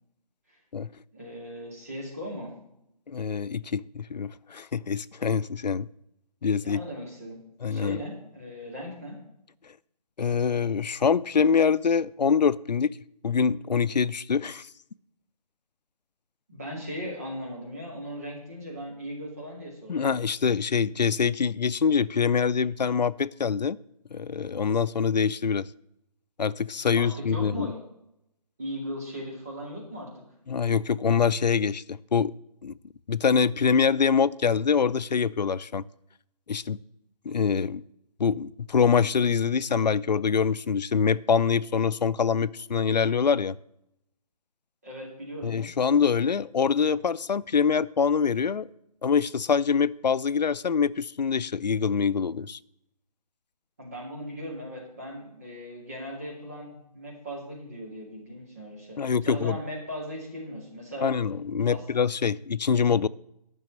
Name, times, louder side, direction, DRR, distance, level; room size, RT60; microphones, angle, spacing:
voice 1, 1.1-2.5 6.6-9.2 16.5-20.1 26.9-27.7 28.6-30.2 44.8-45.6 53.8-61.1 61.6-61.8, equal, 20° right, 2.3 m, -38 dB
voice 2, 3.1-5.9 6.4-6.8 7.6-8.0 10.2-12.9 13.2-14.7 19.9-23.8 24.1-25.7 26.4-27.7 30.5-32.3 32.6-32.7 33.1-35.8 36.5-36.8 37.3-37.8 38.2-43.6 45.4-48.7 49.0-52.6 59.0-59.6 61.0-63.1, left 6 dB, 90° left, 0.5 m, -24 dB
11.0 x 6.1 x 7.5 m
figure-of-eight pair, 180°, 21 cm